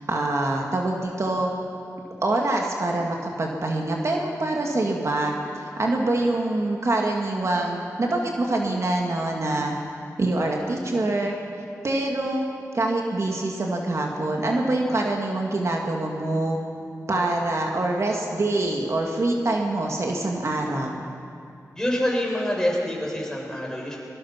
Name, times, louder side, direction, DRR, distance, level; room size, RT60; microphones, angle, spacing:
voice 1, 0.1-1.5 2.2-9.7 10.2-11.3 11.8-12.5 12.7-16.6 17.1-21.1, right 2 dB, 50° right, 0 dB, 2.2 m, -25 dB
voice 2, 21.8-24.0, left 1 dB, 10° left, -2 dB, 6.4 m, -26 dB
23.0 x 21.0 x 6.0 m, 2.5 s
cardioid pair, 65°, 6 cm